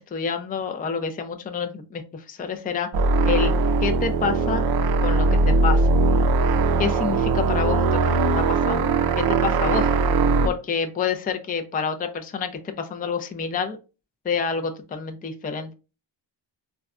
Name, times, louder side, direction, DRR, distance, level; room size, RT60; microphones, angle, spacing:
voice 1, 0.0-2.9 3.3-3.5 3.8-4.6 5.0-5.9 6.8-8.0 8.4-8.9 9.2-9.9 10.4-13.8 14.2-15.7, left 5 dB, 20° left, 6 dB, 0.4 m, -28 dB
sound 1, 2.9-10.5, right 3 dB, 55° right, 0.5 m, -20 dB
3.8 x 2.3 x 2.4 m, 0.31 s
cardioid pair, 85°, 46 cm